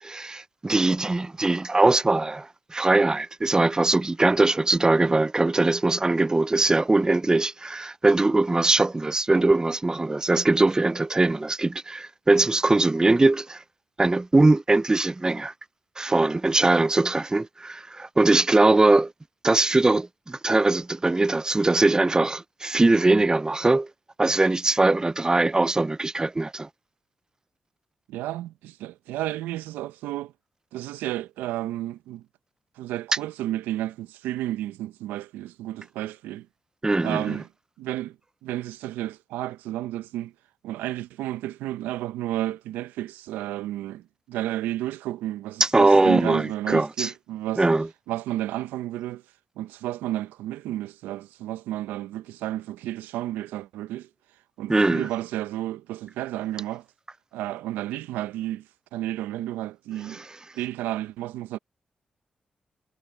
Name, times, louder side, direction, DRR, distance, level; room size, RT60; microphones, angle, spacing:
voice 1, 0.0-13.6 14.0-15.5 16.0-19.1 19.4-23.9 24.2-26.7 36.8-37.4 45.6-47.1 47.6-47.9 54.7-55.1 60.1-60.2, right 2 dB, 25° right, 0.5 m, -21 dB
voice 2, 28.1-30.3 30.7-32.2 32.8-36.5 37.0-37.5 37.8-40.3 40.6-47.6 48.1-49.2 49.6-54.1 54.6-56.9 57.3-60.2 60.5-61.6, right 14 dB, 90° right, 0.8 m, -32 dB
hypercardioid pair, 40°, 3 cm